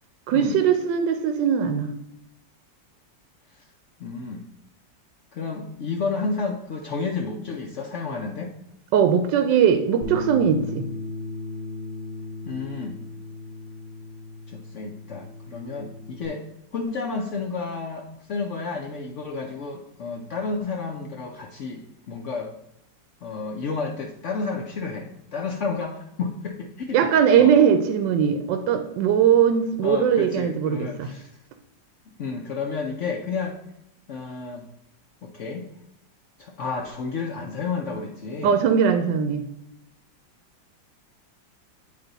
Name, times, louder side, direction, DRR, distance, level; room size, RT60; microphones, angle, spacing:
voice 1, 0.3-1.9 8.9-10.9 26.9-31.1 38.4-39.4, right 8 dB, 80° right, 7 dB, 1.2 m, -20 dB
voice 2, 4.0-4.4 5.3-8.5 12.5-13.0 14.5-16.4 16.7-22.5 23.2-27.1 27.4-27.5 29.8-31.3 32.1-33.6 34.1-34.7 35.2-35.7 36.4-38.6, left 4 dB, 70° left, 2 dB, 0.7 m, -31 dB
Bass guitar, 10.0-16.3, left 2 dB, 50° right, 0.7 m, -36 dB
9.5 x 3.4 x 3.9 m, 0.79 s
omnidirectional pair, 2.0 m